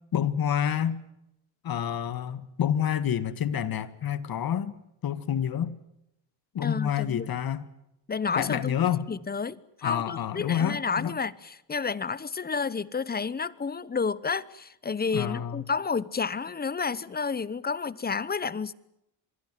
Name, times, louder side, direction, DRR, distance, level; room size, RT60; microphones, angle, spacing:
voice 1, 0.1-1.0 1.6-4.7 5.0-5.8 6.5-7.7 8.3-9.1 9.8-11.1 15.1-15.6, left 9 dB, 45° left, 1.7 m, -28 dB
voice 2, 6.6-7.3 8.1-18.7, left 5 dB, 20° left, 0.8 m, -31 dB
26.5 x 21.0 x 7.6 m
cardioid pair, 110°, 49 cm